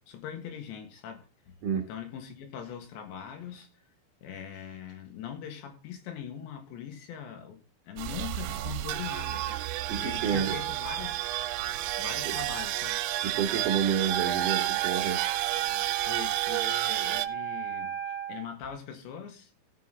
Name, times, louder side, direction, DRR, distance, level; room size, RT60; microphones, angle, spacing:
voice 1, 0.1-3.7 4.2-7.6 7.9-9.5 10.0-11.2 12.0-13.0 16.0-19.5, left 9 dB, 75° left, 3.8 m, -41 dB
sound 1, 8.0-17.3, right 14 dB, 85° right, 2.9 m, -31 dB
voice 2, 9.9-10.6 12.2-12.3 13.2-15.2, right 7 dB, 65° right, 2.1 m, -29 dB
Wind instrument woodwind instrument, 14.1-18.5, right 11 dB, 10° right, 1.5 m, -33 dB
16.0 x 6.0 x 3.9 m
omnidirectional pair, 5.4 m